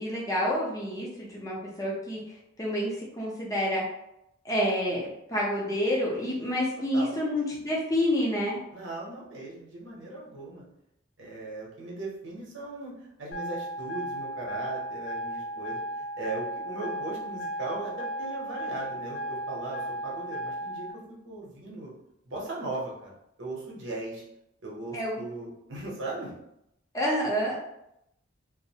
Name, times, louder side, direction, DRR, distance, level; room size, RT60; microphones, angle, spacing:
voice 1, 0.0-2.2 2.6-3.8 4.4-8.6 24.9-25.2 26.9-27.7, equal, 15° left, -5 dB, 0.6 m, -28 dB
voice 2, 8.7-10.6 11.2-20.9 21.2-21.9 22.3-23.1 23.4-24.2 24.6-26.3, right 2 dB, 70° right, -4 dB, 0.8 m, -38 dB
sound 1, 13.3-20.9, right 1 dB, 60° left, 0.4 m, -35 dB
2.4 x 2.0 x 2.7 m, 0.82 s
head